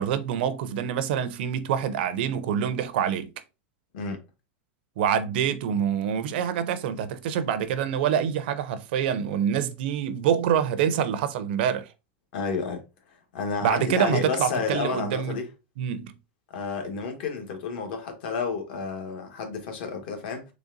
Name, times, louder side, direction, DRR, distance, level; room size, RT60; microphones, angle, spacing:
voice 1, 0.0-3.3 5.0-11.9 13.6-15.4 15.8-16.1, right 8 dB, 60° right, 0.5 m, -26 dB
voice 2, 12.3-12.8 13.1-15.5 16.5-20.5, left 5 dB, 60° left, 1.1 m, -31 dB
3.9 x 3.3 x 2.5 m
supercardioid pair, 170°, 6 cm